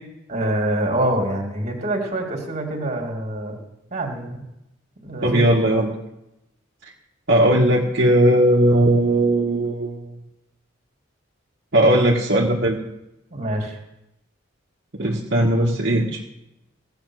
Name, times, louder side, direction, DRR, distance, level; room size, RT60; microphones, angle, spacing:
voice 1, 0.3-3.6 3.9-4.4 5.0-5.9 11.8-12.1 13.3-13.8, right 1 dB, 35° right, 2 dB, 2.5 m, -26 dB
voice 2, 5.2-5.9 7.3-10.1 11.7-12.8 14.9-16.3, right 1 dB, 55° right, -3 dB, 1.5 m, -18 dB
16.0 x 8.0 x 6.3 m, 0.89 s
head